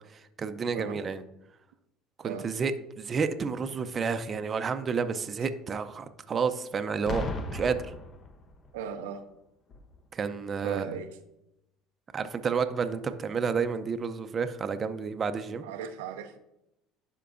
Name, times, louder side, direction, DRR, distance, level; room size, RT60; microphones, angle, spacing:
voice 1, 0.1-1.2 2.2-7.2 7.5-7.9 10.1-10.9 12.1-15.6, right 5 dB, 35° right, 9 dB, 0.5 m, -30 dB
voice 2, 0.7-1.1 2.2-2.5 8.7-9.3 10.6-11.2 15.6-16.4, right 7 dB, 90° right, 7 dB, 0.5 m, -37 dB
Boom, 7.1-8.8 9.7-9.9, left 2 dB, 40° left, 0.8 m, -36 dB
11.5 x 4.6 x 2.5 m, 0.86 s
supercardioid pair, 95°, 0 cm